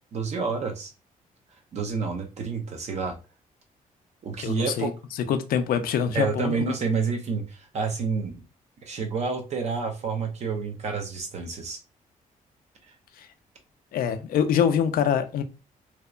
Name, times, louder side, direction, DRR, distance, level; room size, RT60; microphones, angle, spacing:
voice 1, 0.1-0.9 1.7-3.2 4.2-4.9 6.1-8.4 8.8-11.8, right 5 dB, 50° right, 0.6 m, -29 dB
voice 2, 4.4-4.9 5.3-6.7 13.2-13.3 13.9-15.4, left 8 dB, 75° left, 0.4 m, -24 dB
2.8 x 2.0 x 2.3 m
cardioid pair, 160°, 15 cm